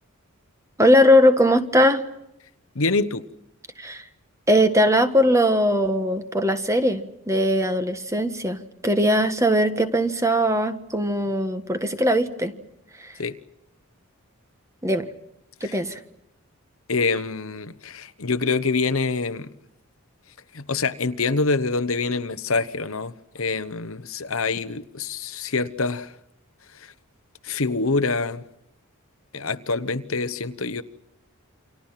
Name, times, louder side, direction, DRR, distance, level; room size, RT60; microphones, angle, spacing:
voice 1, 0.8-2.1 3.8-4.0 4.5-12.5 13.0-13.1 14.8-15.1 15.6-16.0, equal, 15° right, 1.5 m, -20 dB
voice 2, 2.7-3.3 13.2-13.4 15.6-15.8 16.9-19.5 20.5-26.2 26.7-26.9 27.4-28.4 29.3-30.8, left 4 dB, 65° left, 1.1 m, -26 dB
29.0 x 26.0 x 5.8 m
head